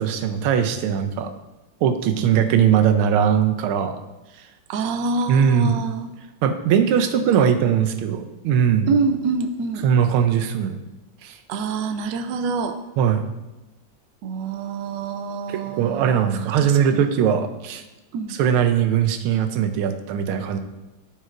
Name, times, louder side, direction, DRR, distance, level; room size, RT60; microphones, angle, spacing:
voice 1, 0.0-1.3 1.8-4.0 5.3-5.8 6.4-8.9 9.8-10.8 11.2-11.3 13.0-13.2 15.5-17.8 18.3-20.6, right 8 dB, 90° right, 7 dB, 1.5 m, -20 dB
voice 2, 4.7-6.1 7.4-7.5 8.9-9.9 11.5-12.8 14.2-17.0 18.1-18.3, right 4 dB, 70° right, 7 dB, 1.1 m, -26 dB
13.0 x 4.4 x 2.4 m, 1.0 s
omnidirectional pair, 2.3 m